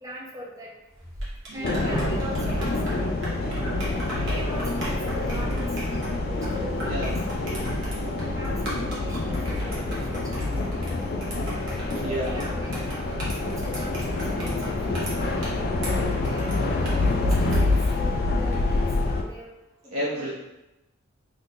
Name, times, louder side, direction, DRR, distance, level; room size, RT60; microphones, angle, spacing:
voice 1, 0.0-0.7 1.5-3.2 4.0-7.1 8.0-10.5 11.0-11.3 12.0-13.1 13.4-17.7 18.0-19.5 20.0-20.3, equal, 15° right, -3 dB, 0.5 m, -40 dB
sound 1, 0.9-18.7, equal, 60° right, 1.0 m, -39 dB
voice 2, 1.5-1.9 6.9-7.1 10.3-10.6 12.0-12.3 19.9-20.3, equal, 80° right, -7 dB, 0.7 m, -31 dB
sound 2, 1.6-19.2, left 2 dB, 45° left, 0.3 m, -26 dB
2.7 x 2.5 x 3.6 m, 0.97 s
head